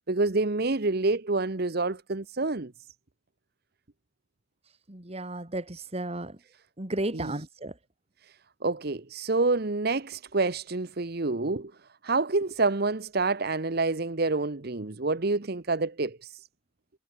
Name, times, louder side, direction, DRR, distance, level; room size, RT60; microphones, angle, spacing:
voice 1, 0.1-2.7 7.1-7.4 8.6-11.7 12.0-16.4, right 3 dB, 55° right, 1.1 m, -27 dB
voice 2, 4.9-6.3 6.8-7.7, right 1 dB, 35° right, 2.4 m, -33 dB
head